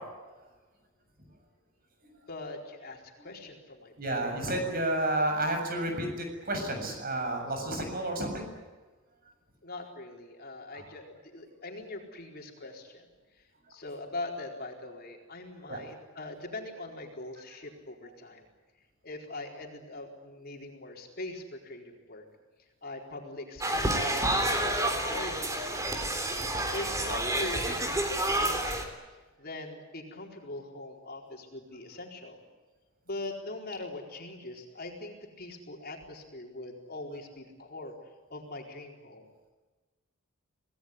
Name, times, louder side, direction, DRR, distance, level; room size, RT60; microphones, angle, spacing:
voice 1, 2.3-4.3 9.6-18.5 19.0-22.2 22.6-26.0 26.7-28.9 29.4-32.4 33.1-37.9 38.3-39.3, left 2 dB, 45° left, 1 dB, 4.3 m, -42 dB
voice 2, 4.0-8.5 15.7-15.8 26.3-26.4, right 1 dB, 40° right, 4 dB, 7.3 m, -31 dB
sound 1, 23.6-28.9, right 1 dB, 15° right, 3.4 m, -29 dB
26.5 x 18.5 x 9.6 m, 1.3 s
head